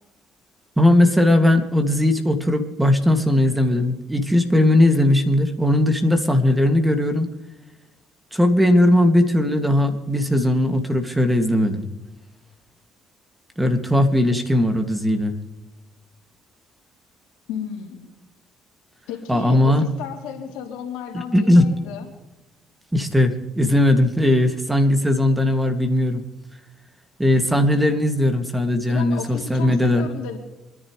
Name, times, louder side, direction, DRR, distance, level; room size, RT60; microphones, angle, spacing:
voice 1, 0.8-7.3 8.3-11.8 13.6-15.4 19.3-19.8 21.1-21.6 22.9-26.2 27.2-30.1, left 1 dB, 10° right, 6 dB, 2.4 m, -18 dB
voice 2, 17.5-18.0 19.1-22.1 28.9-30.4, left 8 dB, 90° left, 1 dB, 3.2 m, -33 dB
27.5 x 10.5 x 3.3 m, 1.0 s
supercardioid pair, 70°, 0 cm